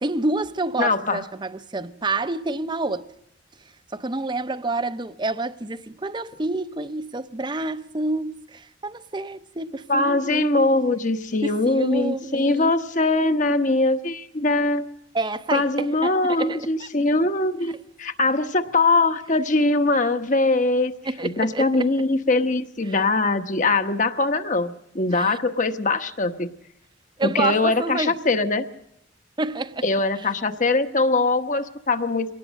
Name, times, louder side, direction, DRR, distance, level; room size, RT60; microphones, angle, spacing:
voice 1, 0.0-3.1 3.9-10.7 11.4-12.7 15.1-16.9 21.0-21.9 25.1-25.4 27.2-28.2 29.4-29.8, right 2 dB, 25° right, 0.7 m, -28 dB
voice 2, 0.8-1.2 9.9-14.8 15.5-20.9 21.2-26.5 27.2-28.7 29.8-32.3, left 2 dB, 45° left, 1.1 m, -22 dB
24.0 x 18.5 x 6.4 m
head